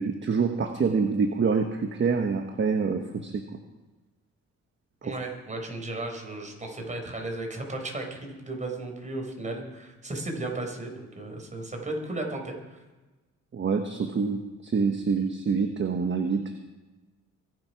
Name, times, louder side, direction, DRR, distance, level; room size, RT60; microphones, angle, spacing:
voice 1, 0.0-3.4 5.0-5.2 13.5-16.6, right 5 dB, 40° right, 6 dB, 1.3 m, -26 dB
voice 2, 5.0-12.8, right 2 dB, 25° right, 2 dB, 4.5 m, -35 dB
23.5 x 7.9 x 5.8 m, 1.2 s
cardioid pair, 90°, 30 cm